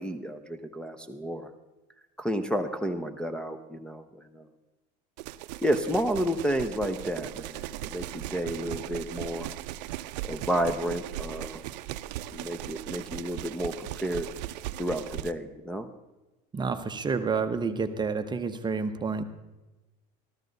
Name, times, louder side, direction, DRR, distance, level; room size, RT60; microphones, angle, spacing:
voice 1, 0.0-1.5 2.2-4.5 5.6-9.5 10.2-11.7 12.3-14.3 14.8-15.9, equal, 5° left, 9 dB, 0.8 m, -31 dB
sound 1, 5.2-15.3, right 14 dB, 85° right, 0.5 m, -38 dB
voice 2, 16.5-19.2, right 5 dB, 20° right, 9 dB, 0.9 m, -29 dB
14.0 x 13.5 x 4.0 m, 1.1 s
supercardioid pair, 115°, 21 cm